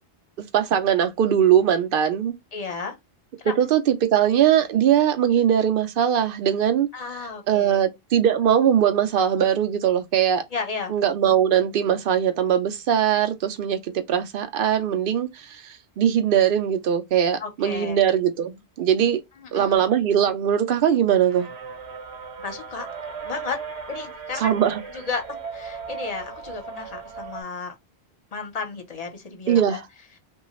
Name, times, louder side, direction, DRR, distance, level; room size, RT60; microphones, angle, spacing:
voice 1, 0.4-2.3 3.4-6.9 7.5-10.4 10.9-19.2 19.5-21.5 24.4-24.8 29.5-29.8, right 9 dB, 65° right, 0.7 m, -21 dB
voice 2, 2.5-3.0 3.4-3.5 6.9-7.9 10.5-10.9 17.4-18.0 19.4-19.8 22.4-22.9 23.2-23.6 23.9-24.5 24.9-27.7 28.3-29.8, left 5 dB, 40° left, 0.8 m, -33 dB
sound 1, 21.2-27.4, right 5 dB, 80° right, 1.0 m, -37 dB
3.2 x 2.3 x 3.0 m
omnidirectional pair, 1.1 m